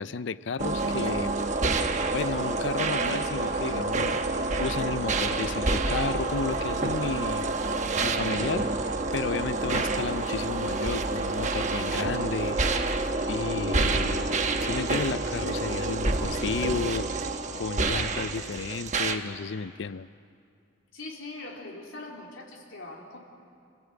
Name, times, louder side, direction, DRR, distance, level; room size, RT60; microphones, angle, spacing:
voice 1, 0.0-1.3 2.1-4.2 4.6-7.5 8.0-8.7 9.1-14.3 14.6-17.1 17.5-20.1, left 4 dB, 70° left, 17 dB, 0.5 m, -32 dB
sound 1, 0.6-19.2, right 3 dB, 35° right, 1.1 m, -28 dB
sound 2, 5.6-8.4 12.5-13.0, right 2 dB, 10° right, 1.0 m, -43 dB
voice 2, 20.9-23.2, left 2 dB, 85° left, -1 dB, 3.6 m, -41 dB
29.5 x 16.0 x 8.3 m, 2.4 s
head